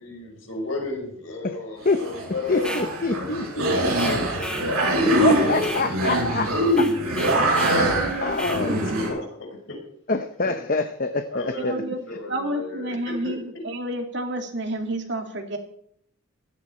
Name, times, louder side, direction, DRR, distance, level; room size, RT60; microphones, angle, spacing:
voice 1, 0.0-4.9 5.4-6.6 7.5-7.9 8.4-9.8 10.4-10.5 11.3-13.4, left 2 dB, 65° left, 2 dB, 5.2 m, -35 dB
sound 1, 1.8-9.1, right 1 dB, 85° right, 7.9 m, -23 dB
voice 2, 2.5-3.9 5.2-6.5 6.8-6.9 7.7-8.8 10.1-11.7, left 3 dB, 40° left, 8 dB, 0.9 m, -26 dB
sound 2, 2.5-2.9 3.9-4.7 5.6-5.9 6.7-7.8 8.3-8.7, equal, 5° left, 1.4 m, -34 dB
voice 3, 7.7-8.4 11.6-15.6, right 1 dB, 55° right, 4 dB, 2.4 m, -30 dB
16.0 x 13.5 x 4.5 m, 0.67 s
head